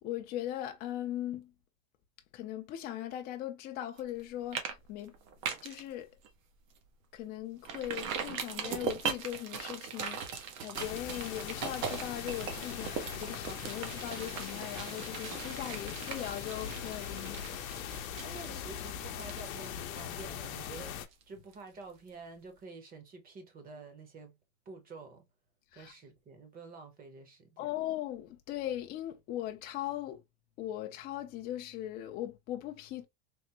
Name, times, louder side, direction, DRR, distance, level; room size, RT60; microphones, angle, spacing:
voice 1, 0.0-1.5 2.3-5.1 5.6-6.1 7.1-17.8 18.5-18.6 25.7-25.9 27.6-30.2 30.6-33.0, left 12 dB, 25° left, 0.4 m, -39 dB
sound 1, 4.0-4.2 4.5-4.7 5.0-5.8 6.2-6.3 6.7-6.8 7.6-21.2 21.5-21.6, right 7 dB, 75° right, 1.0 m, -40 dB
sound 2, 10.7-21.1, left 9 dB, 80° left, 0.7 m, -41 dB
voice 2, 18.2-24.4 24.7-25.2 25.7-27.7, right 3 dB, 20° right, 0.8 m, -49 dB
3.5 x 2.0 x 2.8 m
supercardioid pair, 140°, 40 cm